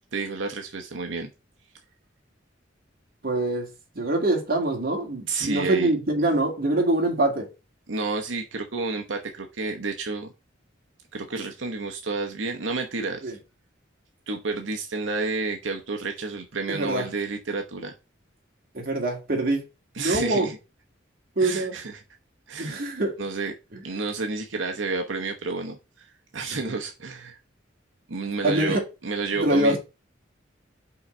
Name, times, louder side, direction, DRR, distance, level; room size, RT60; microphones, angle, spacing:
voice 1, 0.1-1.3 5.3-5.9 7.9-10.3 11.1-13.3 14.3-17.9 19.9-20.6 21.4-22.0 22.5-22.7 23.2-23.5 23.8-26.1 26.3-27.4 28.1-29.8, right 3 dB, 90° right, 0.9 m, -30 dB
voice 2, 3.2-3.7 3.9-7.5 13.2-13.4 16.7-17.1 18.7-19.6 20.0-20.5 21.4-21.7 22.6-23.2 23.7-23.8 26.5-26.7 28.4-28.8 29.4-29.8, right 2 dB, 50° right, 2.2 m, -24 dB
5.7 x 3.9 x 5.4 m
head